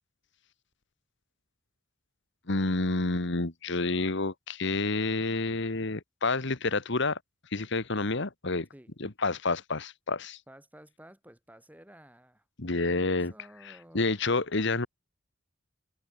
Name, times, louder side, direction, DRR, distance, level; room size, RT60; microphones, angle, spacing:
voice 1, 2.5-7.2 7.5-8.7 9.0-10.4 12.6-13.3 13.7-14.9, left 3 dB, 65° left, 1.7 m, -29 dB
voice 2, 10.5-12.4 12.8-14.2, right 1 dB, 10° right, 6.2 m, -53 dB
head